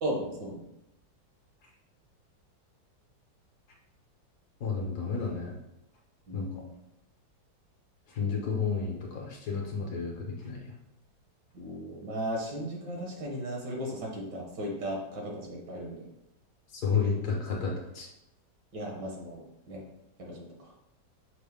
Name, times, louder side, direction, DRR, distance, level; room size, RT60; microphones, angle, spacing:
voice 1, 0.0-0.6 6.3-6.7 11.5-16.1 18.7-19.8 20.2-20.5, equal, 70° right, -2 dB, 1.6 m, -36 dB
voice 2, 4.6-5.5 6.3-6.5 8.1-10.7 16.7-18.1, left 5 dB, 65° left, -1 dB, 1.2 m, -31 dB
5.9 x 2.0 x 3.4 m, 0.86 s
omnidirectional pair, 2.0 m